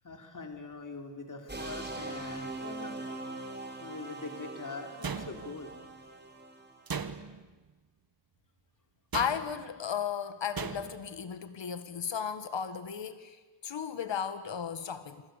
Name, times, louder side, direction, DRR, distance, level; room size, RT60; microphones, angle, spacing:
voice 1, 0.0-3.0 3.8-5.7, left 3 dB, 45° left, 4 dB, 4.1 m, -43 dB
sound 1, 1.5-6.8, right 2 dB, 25° right, 4.1 m, -42 dB
sound 2, 5.0-5.8 6.9-7.5 9.1-9.7 10.6-11.1, right 5 dB, 55° right, 1.7 m, -38 dB
voice 2, 9.1-13.4 13.6-15.2, left 7 dB, 90° left, 10 dB, 1.8 m, -35 dB
28.0 x 25.5 x 8.3 m, 1.3 s
wide cardioid pair, 130°, 43 cm